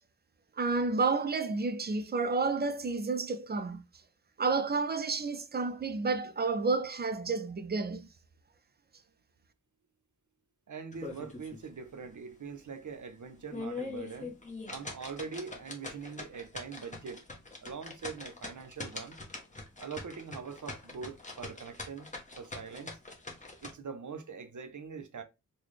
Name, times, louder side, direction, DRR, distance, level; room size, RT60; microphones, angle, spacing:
voice 1, 0.6-3.8 4.4-8.1, right 4 dB, 30° right, 0.4 m, -30 dB
voice 2, 10.7-14.4 14.7-17.2 17.6-19.2 19.8-22.1 22.4-23.0 23.6-25.2, right 5 dB, 60° right, 0.7 m, -43 dB
sound 1, 10.9-11.7 12.0-12.1 12.6-12.7 13.3-23.7, left 3 dB, 20° left, 0.8 m, -43 dB
4.0 x 2.2 x 3.1 m
wide cardioid pair, 110°, 34 cm